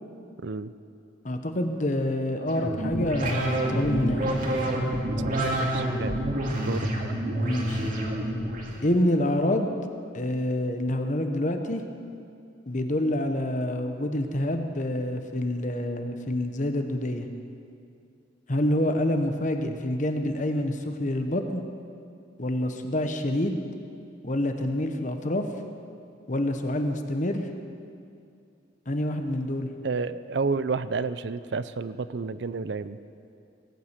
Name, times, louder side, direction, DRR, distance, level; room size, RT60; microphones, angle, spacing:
voice 1, 1.2-4.3 7.4-7.9 8.8-9.7 10.1-11.8 12.7-17.3 18.5-21.6 22.4-23.6 24.2-25.5 26.3-27.5 28.9-29.7, left 1 dB, 40° left, 6 dB, 1.1 m, -27 dB
sound 1, 2.5-8.8, right 1 dB, 45° right, 2.2 m, -28 dB
voice 2, 5.2-6.2 6.7-6.9 19.6-19.8 29.8-33.0, right 4 dB, 65° right, 14 dB, 0.5 m, -31 dB
19.0 x 8.9 x 8.2 m, 2.5 s
head